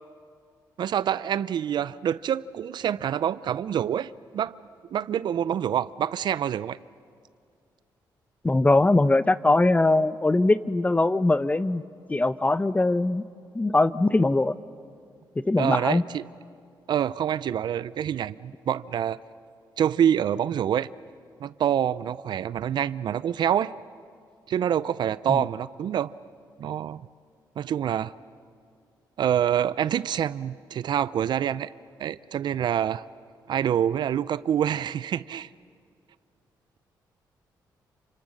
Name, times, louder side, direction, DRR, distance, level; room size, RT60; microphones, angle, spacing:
voice 1, 0.8-4.5 4.9-6.8 15.6-16.2 16.9-19.2 19.8-20.9 21.4-23.7 24.5-26.1 26.6-27.0 27.6-28.1 29.2-31.7 32.0-33.0 33.5-35.5, right 9 dB, 70° right, 0.5 m, -26 dB
voice 2, 8.4-11.8 12.1-13.2 13.5-14.5 15.5-16.0 25.3-25.4, left 2 dB, 20° left, 0.8 m, -21 dB
28.5 x 25.5 x 6.6 m
cardioid pair, 75°, 8 cm